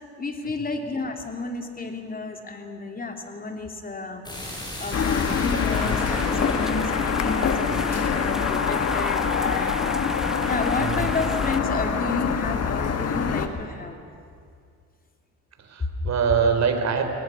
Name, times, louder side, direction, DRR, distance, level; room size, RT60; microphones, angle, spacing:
voice 1, 0.2-9.9 10.4-14.0, left 3 dB, 30° left, 4 dB, 3.2 m, -31 dB
sound 1, 4.2-9.0, left 1 dB, 15° left, 6.7 m, -36 dB
sound 2, 4.9-13.5, left 6 dB, 55° left, 1.9 m, -25 dB
sound 3, 5.7-11.6, equal, ahead, 1.0 m, -35 dB
voice 2, 10.8-11.1 15.6-17.0, right 6 dB, 60° right, 6 dB, 3.5 m, -24 dB
21.5 x 19.0 x 9.8 m, 2.2 s
cardioid pair, 90°, 30 cm